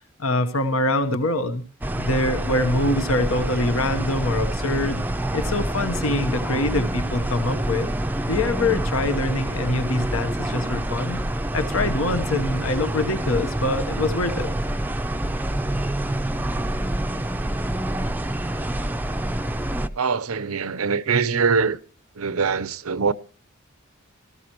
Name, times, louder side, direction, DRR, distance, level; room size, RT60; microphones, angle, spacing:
voice 1, 0.2-1.6 2.0-5.0 5.3-7.9 8.3-11.2 11.5-14.5, left 2 dB, 70° left, 1.1 m, -24 dB
sound 1, 1.8-19.9, right 1 dB, 10° right, 0.5 m, -27 dB
voice 2, 20.0-21.8 22.2-23.1, right 5 dB, 85° right, 0.7 m, -23 dB
19.0 x 14.0 x 3.0 m
head